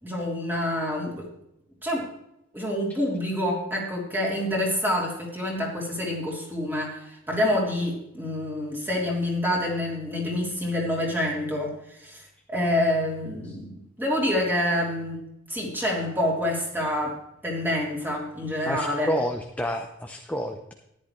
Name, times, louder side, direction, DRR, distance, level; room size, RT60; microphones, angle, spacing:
voice 1, 0.0-1.3 1.8-2.1 2.5-11.7 12.0-12.2 12.5-15.2 15.5-17.1 17.4-19.1, left 1 dB, 10° right, -2 dB, 3.2 m, -27 dB
voice 2, 18.7-20.7, equal, 5° left, 3 dB, 0.7 m, -29 dB
14.0 x 10.5 x 3.2 m, 0.82 s
head